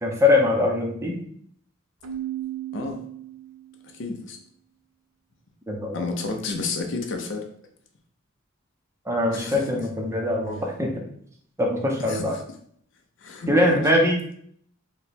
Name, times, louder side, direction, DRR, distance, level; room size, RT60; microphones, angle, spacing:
voice 1, 0.0-1.2 5.7-6.0 9.1-10.9 11.6-12.4 13.5-14.2, left 2 dB, 15° right, 0 dB, 0.6 m, -22 dB
Keyboard (musical), 2.0-3.9, right 12 dB, 75° right, 0.4 m, -35 dB
voice 2, 2.7-3.0 3.8-4.4 5.9-7.5 9.3-9.9 12.0-12.4 13.2-13.8, left 3 dB, 60° left, 3 dB, 0.5 m, -31 dB
3.1 x 2.1 x 4.1 m, 0.64 s
head